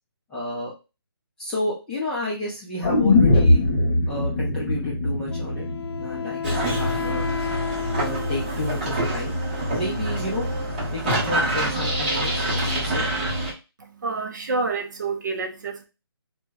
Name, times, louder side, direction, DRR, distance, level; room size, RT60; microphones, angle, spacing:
voice 1, 0.3-0.7 1.4-3.6 4.1-5.6 6.0-7.3 7.9-9.3 9.7-10.5 10.9-13.1, left 2 dB, 5° left, 0.5 m, -31 dB
sound 1, 2.8-6.9 7.2-7.3, left 2 dB, 45° left, 1.1 m, -21 dB
Wind instrument woodwind instrument, 5.3-8.9, left 8 dB, 85° left, 0.5 m, -32 dB
sound 2, 6.4-13.5, right 1 dB, 25° right, 0.9 m, -26 dB
voice 2, 13.8-15.8, right 4 dB, 45° right, 0.6 m, -28 dB
2.9 x 2.2 x 3.5 m
hypercardioid pair, 165°, 13 cm